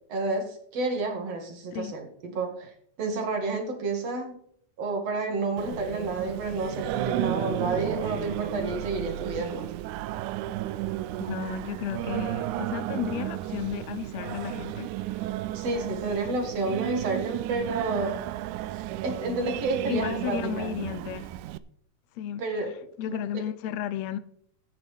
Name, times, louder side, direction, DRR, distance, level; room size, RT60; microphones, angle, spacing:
voice 1, 0.1-2.7 3.0-4.4 4.8-9.7 15.5-18.2 19.0-20.7 22.4-22.7 23.1-23.2, right 3 dB, 55° right, 3.2 m, -30 dB
Singing, 5.6-21.6, right 14 dB, 80° right, 1.9 m, -33 dB
voice 2, 11.2-15.3 19.9-21.3 22.2-22.4 23.0-24.2, left 11 dB, 80° left, 1.7 m, -33 dB
14.0 x 10.5 x 3.5 m
omnidirectional pair, 3.5 m